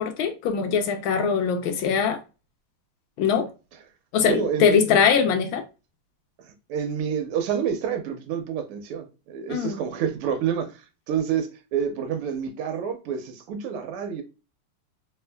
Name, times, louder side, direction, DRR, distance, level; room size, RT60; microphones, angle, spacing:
voice 1, 0.0-2.2 3.2-3.5 4.1-5.6 9.5-9.8, left 7 dB, 75° left, 1.4 m, -22 dB
voice 2, 4.3-4.8 6.7-14.2, right 7 dB, 85° right, 1.7 m, -28 dB
3.5 x 3.2 x 2.2 m
omnidirectional pair, 2.4 m